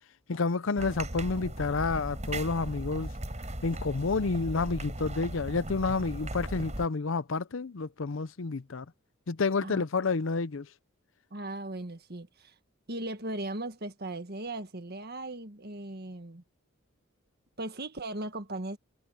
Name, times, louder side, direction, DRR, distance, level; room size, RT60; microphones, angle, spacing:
voice 1, 0.3-3.1 3.6-8.8 9.3-10.7, left 4 dB, 65° left, 0.6 m, -29 dB
sound 1, 0.8-6.9, right 1 dB, 35° right, 6.4 m, -37 dB
voice 2, 11.3-12.5 12.9-16.4 17.6-18.8, right 2 dB, 50° right, 1.7 m, -38 dB
head